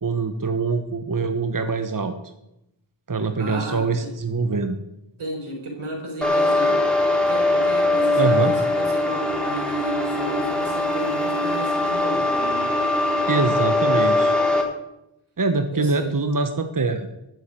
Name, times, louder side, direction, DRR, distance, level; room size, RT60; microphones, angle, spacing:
voice 1, 0.0-2.1 3.1-4.8 8.2-8.5 13.2-14.4 15.4-17.1, right 4 dB, 40° right, 8 dB, 1.2 m, -24 dB
voice 2, 3.4-4.1 5.2-6.8 7.3-12.7 15.7-16.1, right 2 dB, 90° right, 1 dB, 4.7 m, -34 dB
sound 1, 6.2-14.6, left 2 dB, ahead, 4.0 m, -21 dB
12.5 x 7.7 x 8.7 m, 0.87 s
cardioid pair, 40°, 48 cm